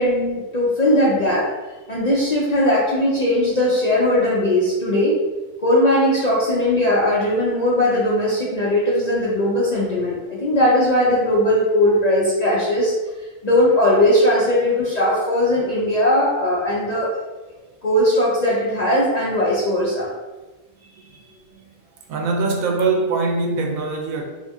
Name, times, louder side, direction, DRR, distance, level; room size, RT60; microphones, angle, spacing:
voice 1, 0.0-1.5 1.9-5.2 5.6-12.9 13.4-17.2 17.8-20.1, left 1 dB, 55° left, -6 dB, 0.4 m, -19 dB
voice 2, 22.1-24.2, right 3 dB, 85° right, 2 dB, 1.0 m, -22 dB
2.7 x 2.6 x 3.5 m, 1.2 s
omnidirectional pair, 1.4 m